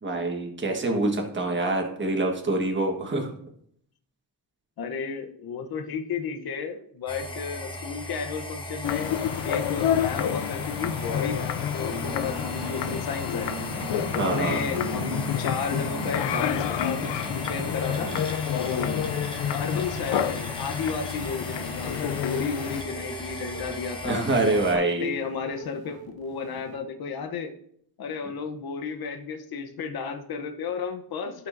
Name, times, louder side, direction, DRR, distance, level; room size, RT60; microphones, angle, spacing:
voice 1, 0.0-3.3 14.2-14.6 24.0-25.1, right 2 dB, 25° right, 1 dB, 1.4 m, -25 dB
voice 2, 4.8-9.1 9.4-13.7 14.1-18.1 18.5-19.1 19.5-24.3 24.7-27.5 28.0-31.5, left 5 dB, 60° left, 5 dB, 0.9 m, -33 dB
sound 1, 7.1-24.7, left 1 dB, 10° left, 1.1 m, -38 dB
sound 2, 8.8-22.8, left 9 dB, 85° left, 0.6 m, -29 dB
sound 3, 11.9-26.8, right 5 dB, 60° right, 1.0 m, -41 dB
14.5 x 6.0 x 2.6 m, 0.69 s
wide cardioid pair, 165°, 41 cm